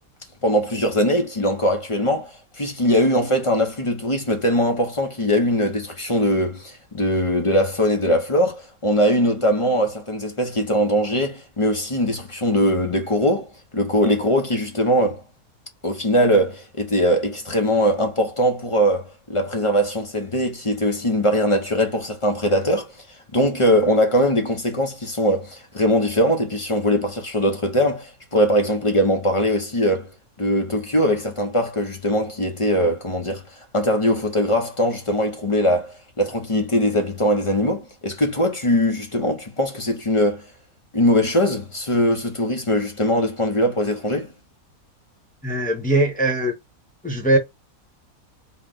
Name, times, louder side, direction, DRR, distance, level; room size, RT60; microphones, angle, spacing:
voice 1, 0.4-15.2 15.8-22.9 23.3-30.1 30.4-33.4 33.7-40.4 40.9-44.3, equal, 30° left, 0.6 m, -21 dB
voice 2, 45.4-46.5 47.0-47.4, right 1 dB, 5° left, 0.9 m, -20 dB
4.0 x 2.2 x 3.8 m
omnidirectional pair, 1.7 m